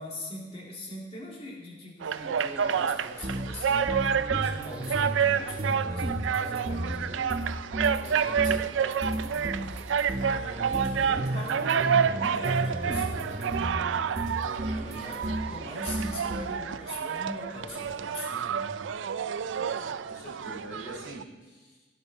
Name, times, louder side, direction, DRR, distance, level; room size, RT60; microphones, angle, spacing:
voice 1, 0.0-4.0 4.3-9.8 10.1-13.6 14.1-18.8, left 1 dB, 30° left, -3 dB, 2.4 m, -42 dB
sound 1, 2.0-21.2, right 7 dB, 85° right, 0.4 m, -29 dB
sound 2, 2.3-18.0, equal, 10° right, 1.1 m, -51 dB
sound 3, 3.2-8.1 8.4-15.6 15.9-16.5, right 1 dB, 35° right, 0.7 m, -33 dB
voice 2, 19.8-21.9, right 1 dB, 50° left, -2 dB, 3.9 m, -44 dB
16.0 x 9.0 x 4.0 m, 1.3 s
head